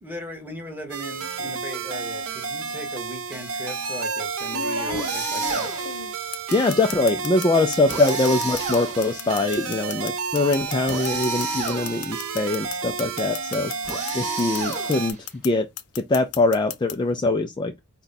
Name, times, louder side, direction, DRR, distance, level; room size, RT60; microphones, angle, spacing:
voice 1, 0.0-5.7, equal, 10° right, 1.3 m, -37 dB
sound 1, 0.9-15.1, right 5 dB, 70° right, 0.8 m, -31 dB
sound 2, 1.3-1.7 2.9-3.0 4.5-7.5 7.7-14.1 14.4-15.5 15.8-16.9, left 7 dB, 85° left, 0.6 m, -34 dB
sound 3, 4.9-6.0 7.9-9.3 10.9-12.2 13.8-15.3, right 3 dB, 40° right, 3.3 m, -30 dB
voice 2, 6.5-13.7 14.1-15.2 15.4-15.7 16.0-17.7, left 2 dB, 20° left, 0.3 m, -22 dB
5.0 x 2.3 x 4.0 m
head